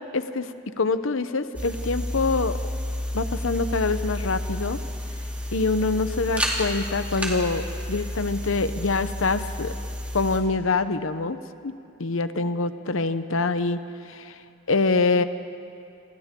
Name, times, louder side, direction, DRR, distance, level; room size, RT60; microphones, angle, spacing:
voice 1, 0.1-2.6 3.1-4.8 5.5-9.7 10.1-11.4 11.6-11.7 12.0-13.8 14.1-14.3 14.7-15.2, left 3 dB, 85° left, 11 dB, 0.9 m, -25 dB
sound 1, 1.5-10.4, left 1 dB, 5° right, 2.6 m, -31 dB
28.0 x 26.5 x 3.8 m, 2.6 s
head